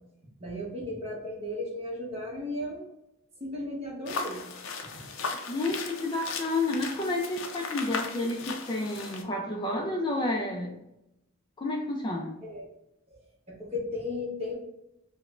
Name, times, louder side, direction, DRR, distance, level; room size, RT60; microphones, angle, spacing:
voice 1, 0.4-2.8 3.4-4.4 12.4-12.7 13.1-13.2 13.5-14.5, left 1 dB, 30° right, -3 dB, 0.9 m, -35 dB
sound 1, 4.1-9.2, left 4 dB, 85° left, 0.5 m, -37 dB
voice 2, 5.5-10.8 11.6-12.4, left 2 dB, 25° left, 0 dB, 0.3 m, -30 dB
5.0 x 2.1 x 2.4 m, 0.85 s
head